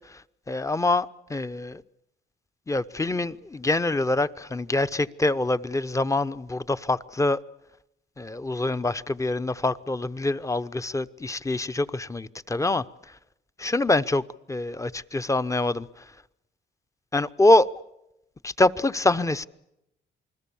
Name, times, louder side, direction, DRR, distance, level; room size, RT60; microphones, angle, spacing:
voice 1, 0.5-1.8 2.7-7.4 8.2-12.8 13.6-15.9 17.1-17.7 18.4-19.5, left 2 dB, 15° left, 0.9 m, -25 dB
28.0 x 21.0 x 7.1 m
cardioid pair, 90°, 20 cm